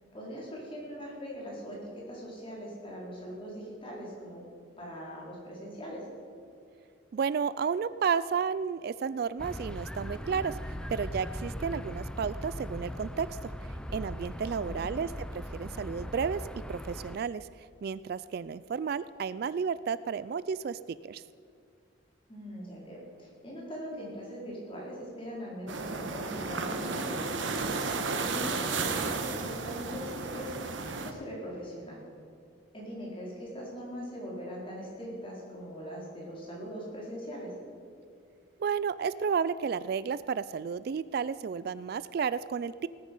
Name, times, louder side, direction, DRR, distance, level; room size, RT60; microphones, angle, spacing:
voice 1, 0.1-4.4 4.8-6.0 14.6-14.9 22.3-27.7 28.0-32.0 32.7-37.5, equal, 30° left, -4 dB, 4.4 m, -41 dB
voice 2, 7.1-10.6 10.9-13.4 13.9-16.4 16.7-21.2 38.6-42.9, right 6 dB, 55° right, 17 dB, 0.3 m, -32 dB
sound 1, 9.4-17.2, equal, 5° left, 0.5 m, -39 dB
sound 2, 25.7-31.1, right 4 dB, 80° right, 1.3 m, -33 dB
19.0 x 9.2 x 5.4 m, 2.4 s
head